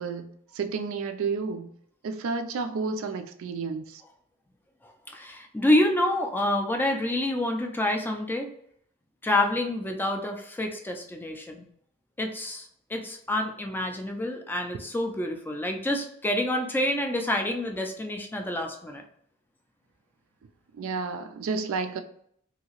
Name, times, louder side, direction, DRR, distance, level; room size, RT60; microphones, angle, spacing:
voice 1, 0.0-1.7 2.0-4.0 20.7-22.0, right 4 dB, 65° right, 7 dB, 0.3 m, -31 dB
voice 2, 4.8-8.5 9.2-11.6 12.2-19.0, left 1 dB, 10° left, 3 dB, 0.3 m, -28 dB
2.8 x 2.7 x 2.8 m, 0.68 s
head